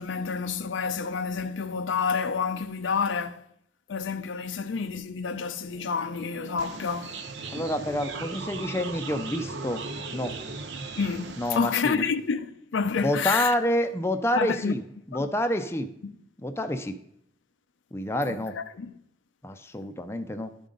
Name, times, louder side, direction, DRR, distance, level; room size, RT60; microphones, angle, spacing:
voice 1, 0.0-3.5 3.9-7.2 11.0-13.5 14.3-14.8 15.1-15.3 16.0-16.1 18.3-18.9, left 5 dB, 90° left, 0.5 m, -29 dB
sound 1, 5.6-11.4, right 5 dB, 55° right, 0.4 m, -45 dB
sound 2, 6.6-11.6, right 3 dB, 75° right, 0.8 m, -38 dB
voice 2, 7.5-9.9 10.1-10.3 11.4-12.0 13.0-14.8 15.1-15.9 16.4-17.0 17.9-18.6 19.4-20.5, left 1 dB, 15° left, 0.4 m, -28 dB
12.0 x 5.2 x 3.8 m
head